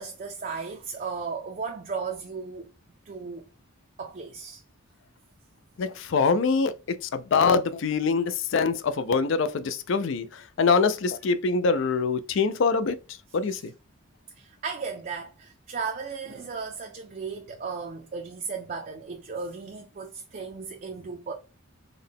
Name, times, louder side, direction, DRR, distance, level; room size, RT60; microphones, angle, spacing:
voice 1, 0.0-2.7 3.1-3.4 4.0-4.6 13.5-13.6 14.4-21.3, right 5 dB, 40° right, 0.4 m, -35 dB
voice 2, 5.8-13.0 13.3-13.7, left 4 dB, 65° left, 0.4 m, -24 dB
3.8 x 2.2 x 3.4 m
head